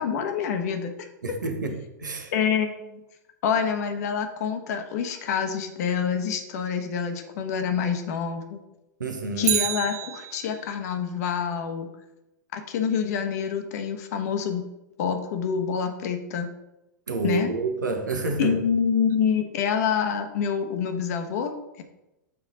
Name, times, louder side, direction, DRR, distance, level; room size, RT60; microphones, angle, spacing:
voice 1, 0.0-1.1 2.3-3.0 3.4-8.6 9.4-11.9 12.5-14.6 15.0-16.5 17.2-17.5 18.4-21.8, left 7 dB, 60° left, 6 dB, 1.0 m, -27 dB
voice 2, 1.2-2.3 9.0-9.6 17.1-18.6, right 3 dB, 85° right, 5 dB, 1.1 m, -29 dB
Bicycle, 9.4-10.8 19.1-19.2, right 12 dB, 65° right, 0.4 m, -29 dB
7.0 x 4.3 x 3.9 m, 0.93 s
figure-of-eight pair, 95°, 10 cm